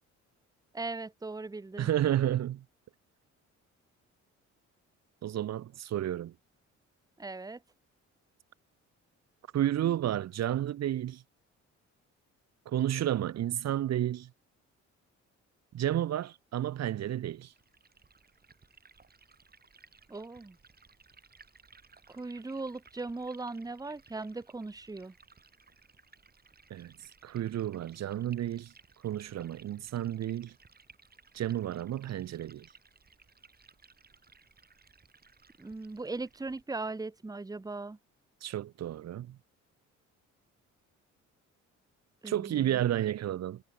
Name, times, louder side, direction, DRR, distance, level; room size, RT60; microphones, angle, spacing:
voice 1, 0.7-1.9 7.2-7.6 20.1-20.6 22.1-25.1 35.6-38.0 42.2-42.8, right 3 dB, 10° right, 1.0 m, -39 dB
voice 2, 1.8-2.6 5.2-6.3 9.5-11.2 12.7-14.3 15.7-17.5 26.7-26.9 27.2-28.7 29.0-30.5 31.3-32.7 38.4-39.4 42.2-43.6, right 12 dB, 60° right, 0.9 m, -31 dB
Liquid, 17.5-36.6, right 4 dB, 30° right, 6.6 m, -60 dB
cardioid pair, 90°, 30 cm